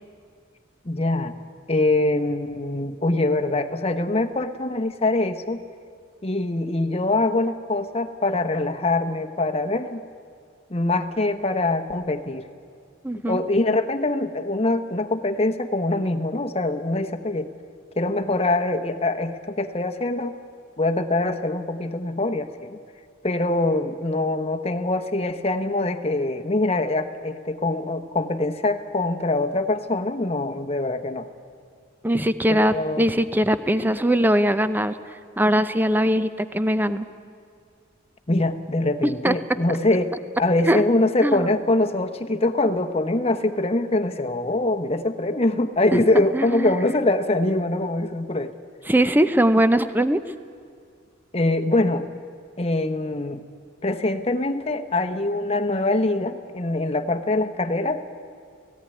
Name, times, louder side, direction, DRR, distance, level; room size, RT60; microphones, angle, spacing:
voice 1, 0.8-1.3 1.7-5.6 6.2-10.0 10.7-12.5 13.3-17.5 18.0-20.4 20.8-22.8 23.2-31.3 32.5-33.0 38.3-48.5 51.3-52.1 52.6-53.4 53.8-58.0, left 2 dB, 30° left, 7 dB, 1.0 m, -23 dB
voice 2, 13.0-13.4 32.0-35.0 35.4-37.0 39.0-39.3 40.7-40.8 41.2-41.5 46.3-47.0 48.9-50.2, right 1 dB, 10° right, 12 dB, 0.6 m, -21 dB
17.5 x 16.0 x 9.9 m, 2.2 s
head